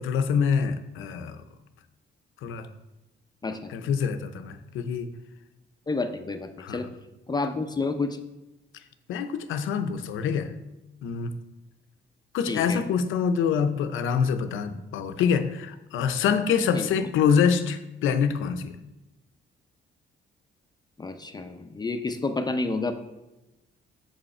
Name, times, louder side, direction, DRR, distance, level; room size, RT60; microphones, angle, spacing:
voice 1, 0.0-1.4 2.4-2.7 3.7-5.1 6.6-6.8 9.1-10.5 11.0-11.3 12.3-18.8, left 6 dB, 80° left, 9 dB, 0.7 m, -25 dB
voice 2, 3.4-3.8 5.9-6.9 7.3-8.2 12.5-12.9 16.7-17.1 21.0-22.9, left 3 dB, 20° left, 7 dB, 0.6 m, -30 dB
7.3 x 5.4 x 4.2 m, 0.98 s
cardioid pair, 90°, 20 cm